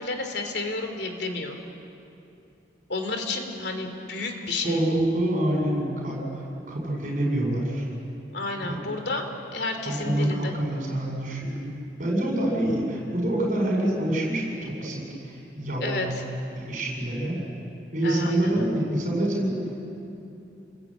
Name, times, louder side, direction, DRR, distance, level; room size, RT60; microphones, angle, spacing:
voice 1, 0.0-1.6 2.9-5.0 8.3-9.2 9.5-10.5 15.8-16.2 18.0-18.5, left 3 dB, 65° left, 5 dB, 3.0 m, -31 dB
voice 2, 4.5-7.9 8.6-8.8 9.8-11.7 12.0-16.1 16.5-17.4 17.9-19.5, right 1 dB, 45° right, -1 dB, 7.7 m, -26 dB
29.5 x 21.5 x 9.1 m, 2.7 s
head